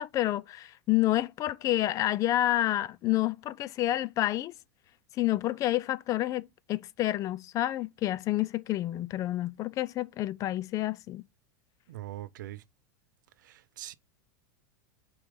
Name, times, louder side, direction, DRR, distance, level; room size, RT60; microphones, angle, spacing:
voice 1, 0.0-4.5 5.2-11.2, left 14 dB, 35° left, 0.3 m, -29 dB
voice 2, 11.9-12.6 13.4-13.9, right 14 dB, 85° right, 0.6 m, -42 dB
5.0 x 4.5 x 4.7 m
supercardioid pair, 130°, 10 cm